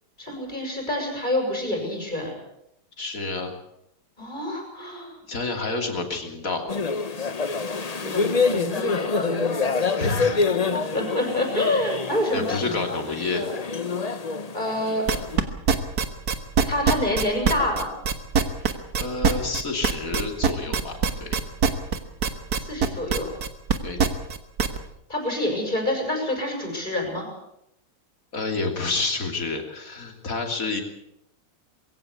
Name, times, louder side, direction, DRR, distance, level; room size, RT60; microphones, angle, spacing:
voice 1, 0.2-2.3 4.2-5.1 8.0-12.8 13.3-13.5 14.0-14.1 14.5-15.0 16.7-17.9 22.6-23.3 25.1-27.3, left 1 dB, 20° left, 2 dB, 6.6 m, -27 dB
voice 2, 3.0-3.5 5.3-6.7 10.0-10.4 12.3-13.6 18.6-21.4 23.8-24.0 28.3-30.8, left 3 dB, 40° left, 4 dB, 3.4 m, -29 dB
sound 1, 6.7-15.4, left 4 dB, 90° left, 0.3 m, -26 dB
sound 2, 15.1-24.8, right 6 dB, 45° right, 1.8 m, -22 dB
22.0 x 16.5 x 8.3 m, 0.80 s
omnidirectional pair, 2.4 m